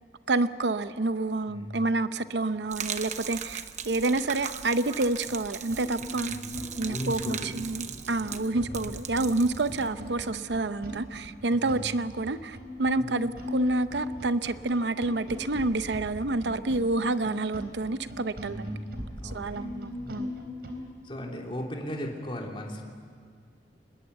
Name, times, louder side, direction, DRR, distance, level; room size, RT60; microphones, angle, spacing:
voice 1, 0.3-6.4 6.8-18.7 19.3-20.3, right 2 dB, 80° right, 12 dB, 0.8 m, -28 dB
voice 2, 1.5-1.9 6.1-6.5 6.9-7.6 8.5-8.9 11.5-11.9 13.0-13.3 18.4-20.2 21.0-22.8, equal, 30° left, 0 dB, 3.1 m, -38 dB
Gurgling / Liquid, 2.7-10.3, right 8 dB, 40° right, 1.0 m, -39 dB
sound 1, 5.2-5.3 5.7-20.8, equal, 60° right, 3.9 m, -40 dB
25.0 x 21.0 x 8.1 m, 2.1 s
head